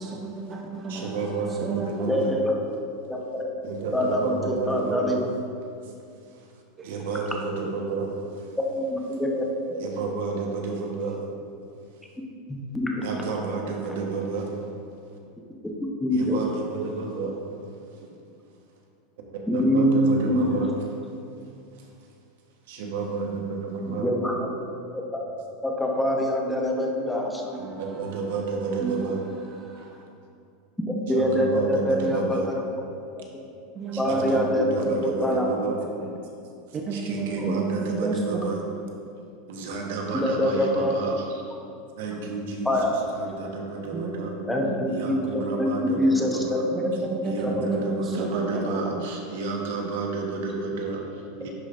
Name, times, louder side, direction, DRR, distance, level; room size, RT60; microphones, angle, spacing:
voice 1, 0.0-2.2 6.8-6.9 28.8-29.0 29.6-29.8 33.8-34.1 36.9-38.2 43.9-44.7 46.7-48.9, right 4 dB, 25° right, 0 dB, 0.6 m, -32 dB
voice 2, 0.9-2.3 3.6-5.2 5.8-5.9 6.3-6.5 6.8-8.5 9.8-11.2 13.0-14.6 16.1-17.7 19.5-20.7 21.7-21.9 22.7-24.1 27.6-29.2 29.8-29.9 31.1-32.5 33.9-35.8 36.7-38.6 39.5-41.3 42.0-42.8 43.1-44.4 44.9-46.5 47.2-51.5, right 4 dB, 75° right, 1 dB, 1.1 m, -31 dB
voice 3, 2.1-2.5 3.1-3.6 3.9-5.2 8.7-9.9 12.5-13.1 15.8-16.4 19.5-20.6 23.9-24.3 24.9-25.2 25.6-27.6 30.9-32.4 33.1-33.2 34.0-35.5 37.4-37.6 38.0-38.1 40.1-40.9 42.6-42.9 44.5-46.9 47.2-47.7, left 1 dB, 5° left, -1 dB, 0.8 m, -25 dB
10.5 x 5.1 x 2.5 m, 2.5 s
supercardioid pair, 140°, 0 cm